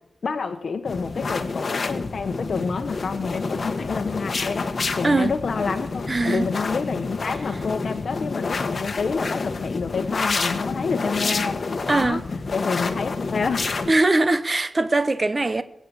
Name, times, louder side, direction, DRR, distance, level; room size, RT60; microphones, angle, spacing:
voice 1, 0.2-12.2 12.5-13.7, left 5 dB, 70° left, 1.0 m, -28 dB
sound 1, 0.9-13.9, left 4 dB, 50° left, 1.3 m, -28 dB
voice 2, 6.1-6.5 11.9-12.3 13.9-15.6, right 2 dB, 30° right, 0.9 m, -21 dB
21.5 x 8.6 x 7.0 m
wide cardioid pair, 140°, 0 cm